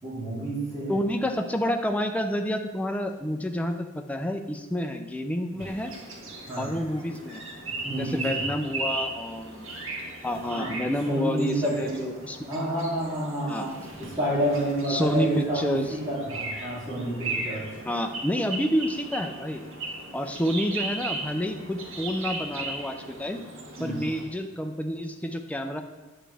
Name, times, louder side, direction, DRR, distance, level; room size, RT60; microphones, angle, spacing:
voice 1, 0.0-1.0 6.5-6.7 7.8-8.4 10.5-10.7 11.0-12.0 12.5-13.7 14.0-17.7 23.8-24.0, right 1 dB, 20° right, -8 dB, 2.6 m, -29 dB
voice 2, 0.9-5.9 6.6-7.4 7.9-9.7 10.2-12.4 13.5-13.7 14.9-16.0 17.9-19.6 20.1-23.4 23.8-25.8, equal, 5° left, 5 dB, 0.4 m, -29 dB
sound 1, 5.6-24.2, right 2 dB, 85° right, 1.6 m, -37 dB
9.0 x 6.1 x 3.4 m, 1.2 s
head